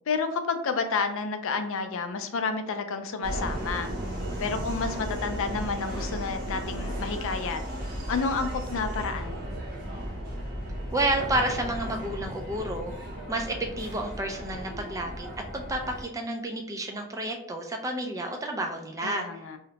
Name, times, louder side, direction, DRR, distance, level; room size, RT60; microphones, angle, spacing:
voice 1, 0.1-3.9 4.4-7.6 8.1-9.4 19.0-19.6, left 4 dB, 60° left, 7 dB, 0.4 m, -30 dB
Subway metro underground, 3.2-16.0, equal, 40° right, 0.7 m, -35 dB
voice 2, 10.9-12.9 13.3-15.3 15.5-19.4, right 1 dB, 15° right, 3 dB, 0.3 m, -30 dB
2.8 x 2.1 x 3.9 m, 0.76 s
head